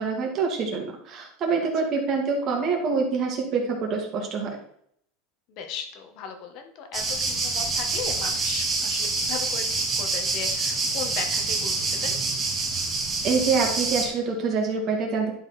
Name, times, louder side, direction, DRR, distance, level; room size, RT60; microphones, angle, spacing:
voice 1, 0.0-4.6 13.2-15.3, right 4 dB, 35° right, 0 dB, 2.4 m, -26 dB
voice 2, 5.5-12.2, left 6 dB, 50° left, 6 dB, 1.5 m, -37 dB
sound 1, 6.9-14.1, right 3 dB, 20° right, 2.1 m, -26 dB
11.0 x 4.7 x 4.3 m, 0.67 s
supercardioid pair, 150°, 0 cm